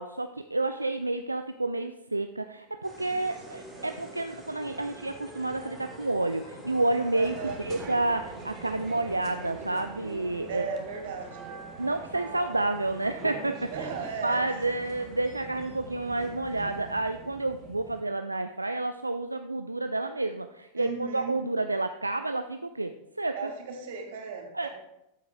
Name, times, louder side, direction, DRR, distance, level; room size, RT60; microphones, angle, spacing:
voice 1, 0.0-10.7 11.8-13.9 14.2-23.4 24.5-24.7, right 2 dB, 85° right, 8 dB, 0.3 m, -30 dB
sound 1, 2.8-17.1, equal, 5° right, 3.4 m, -47 dB
voice 2, 3.1-4.0 7.1-7.6 10.5-11.7 13.7-14.4 14.9-15.0 20.8-21.4 23.3-24.7, right 6 dB, 55° right, 3 dB, 2.0 m, -37 dB
sound 2, 7.2-18.0, right 5 dB, 35° right, 1.5 m, -45 dB
13.0 x 7.9 x 2.4 m, 0.87 s
figure-of-eight pair, 90°, 0 cm